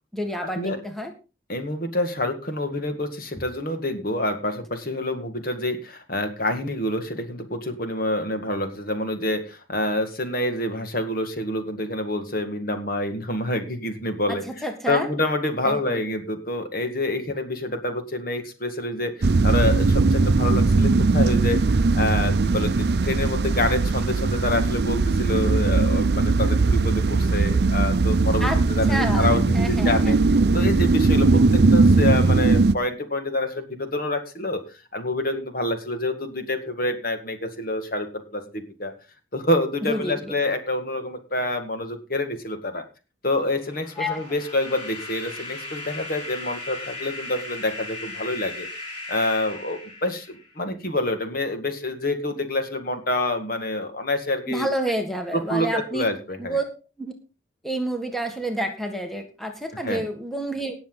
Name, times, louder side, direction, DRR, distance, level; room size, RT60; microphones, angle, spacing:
voice 1, 0.1-1.1 14.3-15.1 15.6-16.0 28.4-30.1 39.8-40.3 44.0-44.2 54.5-56.1 56.4-56.7 57.0-57.1 57.6-60.7, right 1 dB, ahead, 4 dB, 1.8 m, -29 dB
voice 2, 1.5-14.4 14.9-30.2 30.5-34.6 34.9-38.9 39.3-42.8 43.2-48.7 49.1-54.7 55.3-56.6 59.8-60.0, left 1 dB, 50° left, 7 dB, 2.0 m, -27 dB
sound 1, 19.2-32.7, right 3 dB, 60° right, 0.5 m, -19 dB
sound 2, 43.6-50.6, left 2 dB, 30° left, 7.8 m, -37 dB
18.5 x 7.1 x 4.0 m, 0.31 s
head